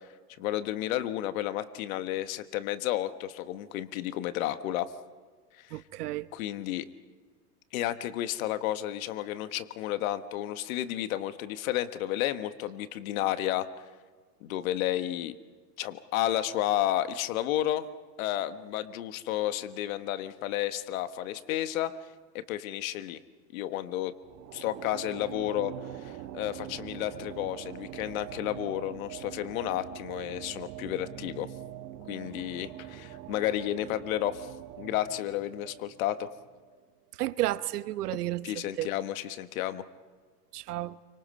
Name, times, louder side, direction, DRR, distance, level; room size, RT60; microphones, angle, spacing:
voice 1, 0.4-4.9 5.6-5.8 6.3-6.9 7.7-13.7 14.4-15.3 15.8-17.9 18.2-21.9 22.3-23.2 23.5-24.1 24.5-31.5 32.1-34.5 34.8-36.3 38.4-39.8, left 13 dB, 55° left, 1.4 m, -32 dB
voice 2, 5.7-6.3 37.2-38.5 38.8-38.9 40.5-41.0, right 15 dB, 70° right, 1.1 m, -31 dB
sound 1, 24.2-36.8, right 13 dB, 35° right, 1.3 m, -44 dB
29.0 x 25.0 x 5.5 m
hypercardioid pair, 130°, 48 cm